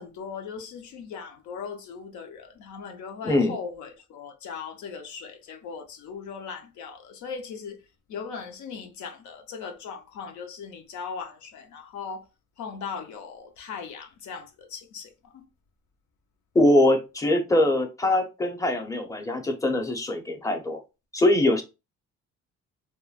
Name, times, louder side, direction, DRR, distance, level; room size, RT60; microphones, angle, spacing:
voice 1, 0.0-7.8 8.1-12.3 12.6-15.5, left 6 dB, 75° left, 0.5 m, -39 dB
voice 2, 3.2-3.6 16.5-20.8 21.1-21.6, left 1 dB, 10° left, 0.6 m, -22 dB
2.9 x 2.2 x 2.3 m
cardioid pair, 90°, 30 cm